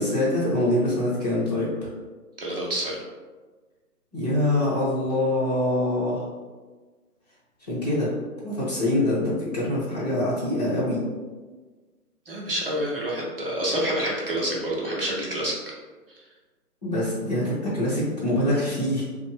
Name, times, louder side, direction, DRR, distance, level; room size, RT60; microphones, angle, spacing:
voice 1, 0.0-1.7 4.1-6.2 7.7-8.1 8.4-11.0 16.8-19.0, left 1 dB, 25° left, -9 dB, 0.8 m, -24 dB
voice 2, 2.4-3.0 12.3-15.6, right 1 dB, 40° right, -4 dB, 0.5 m, -27 dB
2.7 x 2.1 x 3.1 m, 1.3 s
figure-of-eight pair, 155°, 48 cm